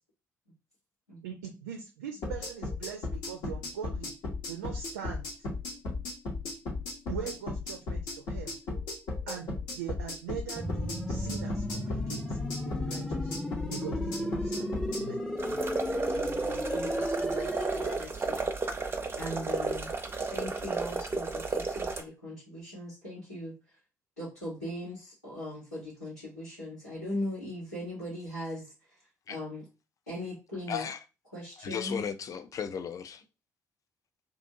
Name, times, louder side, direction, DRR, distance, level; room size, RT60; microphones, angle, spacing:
voice 1, 1.2-4.1 4.5-5.3 7.1-8.6 9.3-12.4 12.6-13.3 13.7-15.2, right 8 dB, 75° right, 0.4 m, -41 dB
sound 1, 2.2-15.0, left 3 dB, 60° left, 1.0 m, -35 dB
sound 2, 10.6-18.0, equal, 10° left, 0.8 m, -33 dB
sound 3, 15.4-22.0, right 4 dB, 25° right, 0.6 m, -33 dB
voice 2, 16.1-18.4 19.1-19.9 20.3-23.5 24.2-28.6 29.3-29.6 30.1-30.9 31.3-32.0, left 1 dB, 90° left, 1.3 m, -39 dB
voice 3, 30.7-31.0 31.6-33.2, left 7 dB, 40° left, 0.4 m, -35 dB
2.7 x 2.5 x 2.7 m
figure-of-eight pair, 45°, 9 cm